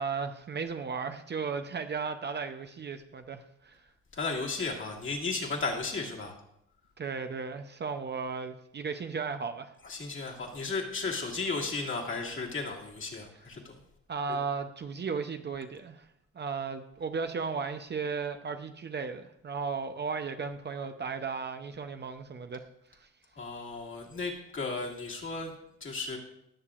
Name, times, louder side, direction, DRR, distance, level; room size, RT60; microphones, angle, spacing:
voice 1, 0.0-3.8 7.0-9.7 14.1-16.1 16.3-22.6 22.9-23.1, right 5 dB, 35° right, 7 dB, 0.6 m, -35 dB
voice 2, 4.1-6.3 9.8-13.8 23.4-25.5 25.8-26.2, left 3 dB, 40° left, -1 dB, 2.1 m, -34 dB
17.5 x 6.7 x 2.4 m, 0.79 s
cardioid pair, 90°, 30 cm